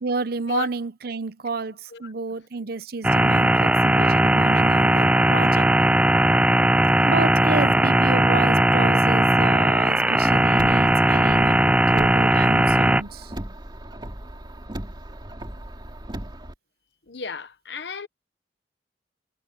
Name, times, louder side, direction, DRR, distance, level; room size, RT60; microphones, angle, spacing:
voice 1, 0.0-5.7 7.0-13.3, right 3 dB, 60° right, 0.8 m, -30 dB
voice 2, 1.6-2.1 3.9-4.3 4.9-5.3 7.6-7.7 8.8-9.0 17.1-18.1, left 5 dB, 75° left, 1.0 m, -35 dB
sound 1, 3.0-13.0, right 1 dB, 5° right, 0.3 m, -18 dB
Car, 10.2-16.5, right 1 dB, 25° right, 2.4 m, -37 dB
head